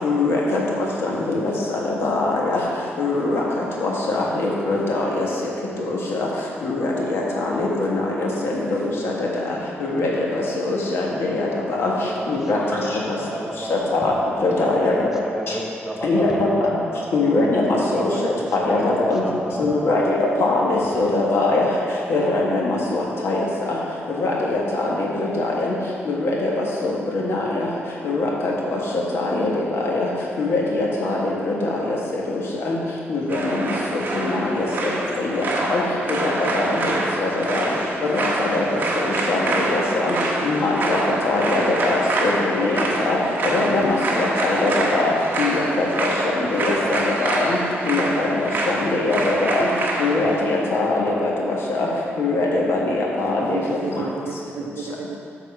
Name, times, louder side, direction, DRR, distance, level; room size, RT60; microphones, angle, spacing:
voice 1, 0.0-2.6 3.0-3.4 3.8-5.3 5.9-6.3 6.6-7.2 7.5-9.3 9.8-11.9 12.3-12.8 13.1-13.2 13.7-14.1 14.4-15.1 16.0-16.5 17.1-19.2 19.6-21.7 22.1-23.4 23.7-23.8 24.1-25.7 26.0-26.5 26.8-27.7 28.0-28.8 29.1-30.1 30.4-32.0 32.3-32.8 33.1-34.9 35.2-35.4 35.7-35.8 36.1-36.8 37.2-37.6 38.1-38.6 39.0-40.1 40.4-41.0 41.2-43.2 43.5-45.1 45.4-47.6 47.8-49.7 50.0-51.9 52.2-53.6, left 2 dB, 65° left, -3 dB, 1.5 m, -22 dB
voice 2, 12.0-12.4 12.7-13.8 14.6-17.1 17.9-20.2 21.1-21.2, right 1 dB, 10° right, -1 dB, 0.8 m, -31 dB
sound 1, 33.3-50.4, right 2 dB, 45° right, 1.1 m, -26 dB
voice 3, 53.5-55.2, right 5 dB, 60° right, 5 dB, 0.5 m, -31 dB
8.3 x 4.2 x 6.4 m, 2.5 s
wide cardioid pair, 150°, 4 cm